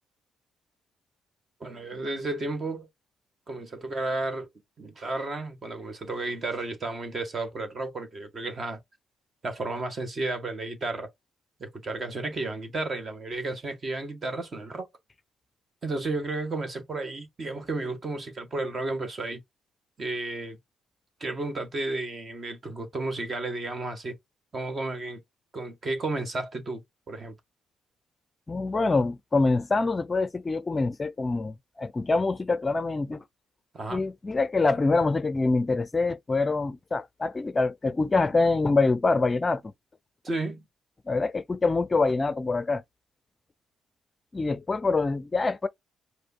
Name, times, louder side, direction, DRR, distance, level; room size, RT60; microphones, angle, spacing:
voice 1, 1.6-2.9 3.5-4.5 4.8-8.8 9.4-11.1 11.6-14.9 15.8-19.4 20.0-20.6 21.2-24.1 24.5-25.2 25.5-26.8 27.1-27.3 33.7-34.0 40.2-40.6, right 2 dB, 40° right, 1.6 m, -32 dB
voice 2, 28.5-33.2 33.9-39.7 41.1-42.8 44.3-45.7, left 3 dB, 25° left, 0.5 m, -25 dB
4.9 x 2.1 x 4.3 m
cardioid pair, 90°, 0 cm